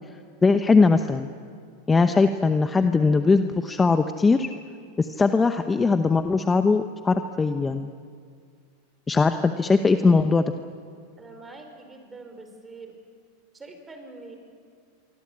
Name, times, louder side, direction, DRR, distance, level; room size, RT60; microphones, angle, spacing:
voice 1, 0.4-1.3 1.9-4.5 5.0-7.9 9.1-10.5, left 4 dB, 15° left, 8 dB, 0.9 m, -20 dB
voice 2, 11.2-12.9 13.5-14.4, right 3 dB, 15° right, 5 dB, 5.0 m, -44 dB
27.0 x 24.5 x 8.7 m, 2.2 s
supercardioid pair, 130°, 0 cm